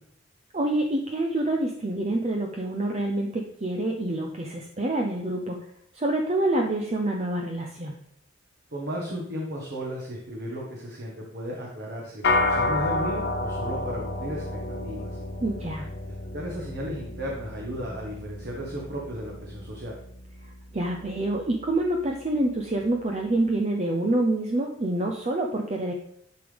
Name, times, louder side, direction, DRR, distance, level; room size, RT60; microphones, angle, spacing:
voice 1, 0.5-5.7 5.9-8.0 15.4-15.9 20.4-25.9, right 1 dB, 30° right, 2 dB, 0.6 m, -27 dB
voice 2, 8.7-15.2 16.3-19.9, equal, 55° right, -2 dB, 1.4 m, -35 dB
sound 1, 12.2-21.8, left 2 dB, 55° left, 0.8 m, -31 dB
11.5 x 5.2 x 3.4 m, 0.71 s
head